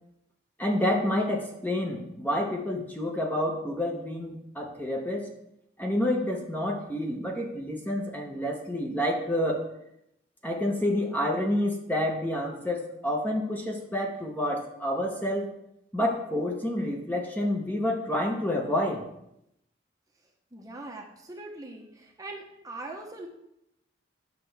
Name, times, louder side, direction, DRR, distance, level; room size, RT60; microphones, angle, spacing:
voice 1, 0.6-5.3 5.8-9.7 10.4-15.5 15.9-19.0, left 1 dB, 10° left, 0 dB, 0.9 m, -28 dB
voice 2, 20.5-23.3, right 2 dB, 20° right, 0 dB, 0.9 m, -41 dB
9.3 x 6.7 x 3.4 m, 0.80 s
head